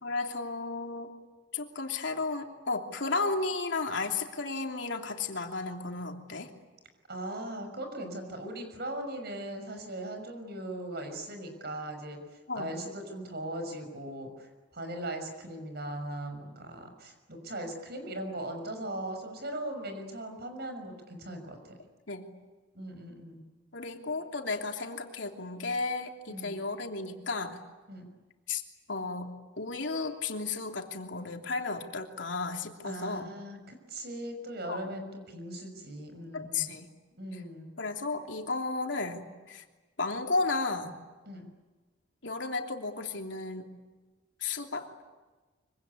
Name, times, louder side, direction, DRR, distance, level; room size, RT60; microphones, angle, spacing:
voice 1, 0.0-1.1 1.5-6.5 12.5-12.7 22.1-22.3 23.7-27.6 28.5-28.6 28.9-33.3 34.7-34.9 36.3-36.9 37.3-37.4 37.8-39.6 40.0-40.9 42.2-43.7 44.4-44.9, left 3 dB, 90° left, 3 dB, 3.0 m, -33 dB
voice 2, 7.1-21.7 22.7-23.4 26.3-26.6 27.9-28.1 32.8-36.7 37.2-37.7 41.3-41.5, right 1 dB, 60° right, 6 dB, 6.2 m, -39 dB
25.0 x 24.5 x 9.7 m, 1.3 s
head